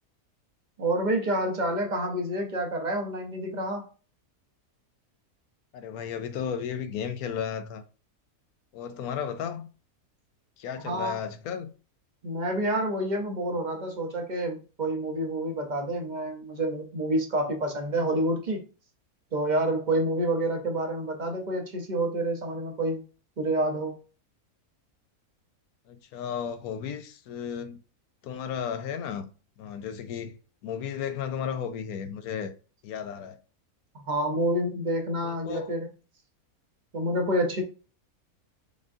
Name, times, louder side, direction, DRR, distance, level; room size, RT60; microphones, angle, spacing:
voice 1, 0.8-3.9 10.8-11.2 12.2-18.7 19.3-23.0 23.4-24.0 33.9-35.9 36.9-37.6, right 1 dB, 35° right, 0.9 m, -28 dB
voice 2, 5.7-7.8 8.7-9.7 10.6-11.7 25.9-27.8 28.2-29.3 29.6-30.4 30.6-32.5 32.8-33.4 35.2-35.7, left 8 dB, 80° left, 1.1 m, -34 dB
5.1 x 3.7 x 2.7 m
omnidirectional pair, 1.6 m